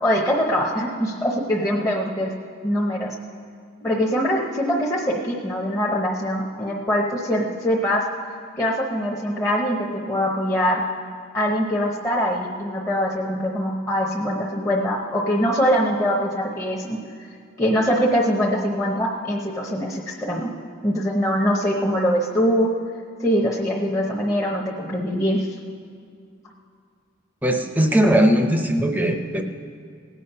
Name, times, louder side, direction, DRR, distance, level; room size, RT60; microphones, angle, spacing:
voice 1, 0.0-2.3 2.6-3.1 3.8-8.0 8.6-10.8 11.3-17.0 17.6-20.5 20.8-22.7 23.2-25.5, equal, 15° left, -3 dB, 0.9 m, -23 dB
voice 2, 27.4-29.4, equal, 10° right, 4 dB, 0.7 m, -19 dB
18.0 x 8.4 x 5.6 m, 2.3 s
head